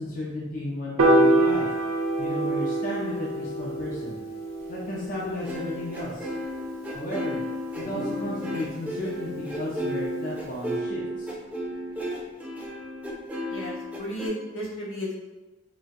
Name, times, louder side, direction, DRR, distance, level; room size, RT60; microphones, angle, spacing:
voice 1, 0.0-1.8 2.2-4.2 4.7-6.3 6.9-7.4 7.8-11.3, left 1 dB, 40° left, -5 dB, 0.5 m, -34 dB
Piano, 1.0-7.3, right 1 dB, 80° right, 0.5 m, -26 dB
sound 1, 4.6-4.7 5.1-5.3 6.1-6.5 7.8-12.1, left 1 dB, 45° right, 1.2 m, -42 dB
sound 2, 5.4-14.3, equal, 5° right, 0.4 m, -33 dB
voice 2, 13.5-15.2, equal, 80° left, -5 dB, 0.9 m, -34 dB
4.0 x 2.2 x 2.3 m, 1.1 s
head